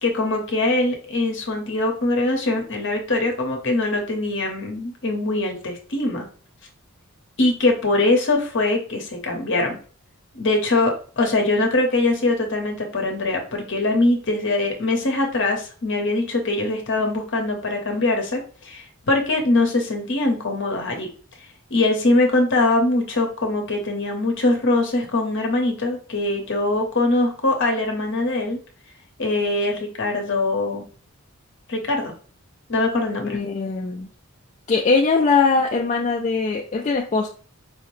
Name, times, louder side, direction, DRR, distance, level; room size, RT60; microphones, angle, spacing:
voice 1, 0.0-6.3 7.4-9.8 10.3-21.1 21.7-28.6 29.2-30.8 31.7-32.1 32.7-33.4, left 2 dB, 55° left, 2 dB, 0.9 m, -22 dB
voice 2, 33.2-34.1 34.7-37.3, left 4 dB, 30° left, 0 dB, 0.3 m, -21 dB
4.7 x 2.1 x 3.1 m, 0.39 s
head